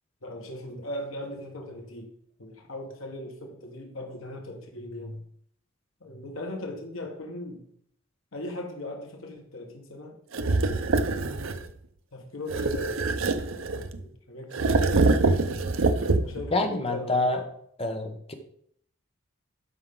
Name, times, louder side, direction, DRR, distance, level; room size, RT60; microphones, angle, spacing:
voice 1, 0.2-2.1 2.4-5.2 6.0-7.6 8.3-10.2 10.5-11.1 12.1-13.1 13.7-14.8 16.1-17.5, left 1 dB, 80° left, 2 dB, 1.5 m, -39 dB
sound 1, 10.3-11.7 12.5-14.0 14.5-16.5, right 3 dB, 75° right, 0.7 m, -25 dB
voice 2, 16.5-17.4 17.8-18.3, left 2 dB, 30° left, 5 dB, 1.1 m, -27 dB
12.5 x 5.5 x 3.8 m, 0.67 s
head